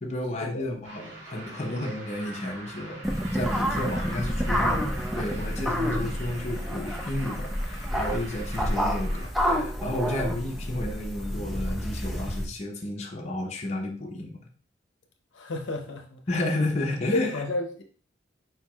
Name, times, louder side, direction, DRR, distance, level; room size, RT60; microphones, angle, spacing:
voice 1, 0.0-3.0 3.3-4.8 5.1-14.4 16.3-17.4, left 1 dB, 35° left, 0.7 m, -32 dB
sound 1, 0.8-9.3, right 2 dB, 85° right, 1.9 m, -44 dB
sound 2, 3.0-12.5, equal, ahead, 0.5 m, -29 dB
voice 2, 15.3-16.2 17.1-17.8, left 2 dB, 70° left, 0.7 m, -31 dB
4.8 x 4.5 x 2.3 m
head